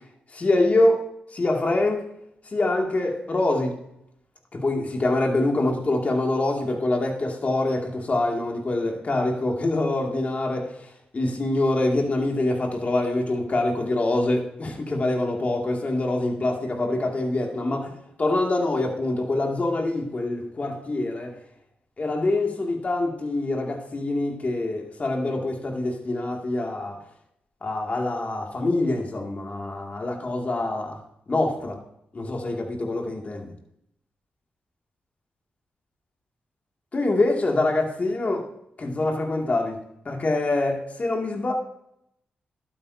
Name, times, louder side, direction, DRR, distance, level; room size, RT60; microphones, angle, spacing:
voice 1, 0.3-1.0 1.3-2.0 2.5-3.7 4.5-10.8 11.1-17.9 18.2-21.3 22.0-27.0 27.6-31.0 31.3-31.8 32.1-33.5 36.9-38.5 38.8-39.8 40.0-41.5, left 2 dB, 40° left, 2.5 m, -25 dB
12.0 x 8.8 x 2.8 m
cardioid pair, 60°, 4 cm